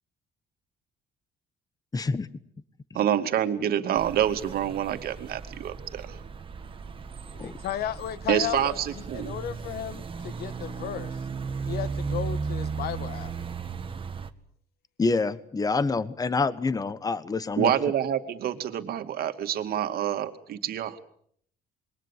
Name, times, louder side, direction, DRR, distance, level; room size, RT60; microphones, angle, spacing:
voice 1, 1.9-2.3 7.4-7.5 15.0-17.7, left 3 dB, 20° left, 1.3 m, -27 dB
voice 2, 2.9-6.2 8.3-9.4 17.6-21.0, right 10 dB, 65° right, 2.5 m, -27 dB
sound 1, 4.0-14.3, right 5 dB, 30° right, 1.8 m, -36 dB
voice 3, 7.3-11.2 11.7-13.3, left 11 dB, 70° left, 1.5 m, -34 dB
27.0 x 22.5 x 7.4 m
cardioid pair, 110°, 17 cm